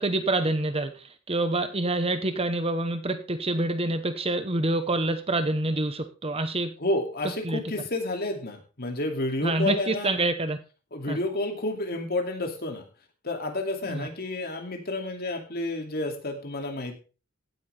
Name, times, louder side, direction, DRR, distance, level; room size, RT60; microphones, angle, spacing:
voice 1, 0.0-6.7 7.4-7.6 9.4-10.6 11.1-11.2 13.9-14.1, right 2 dB, 25° right, 10 dB, 1.0 m, -27 dB
voice 2, 6.8-10.1 10.9-12.8 13.2-17.0, left 2 dB, 45° left, 4 dB, 2.6 m, -30 dB
16.5 x 9.3 x 3.4 m, 0.33 s
head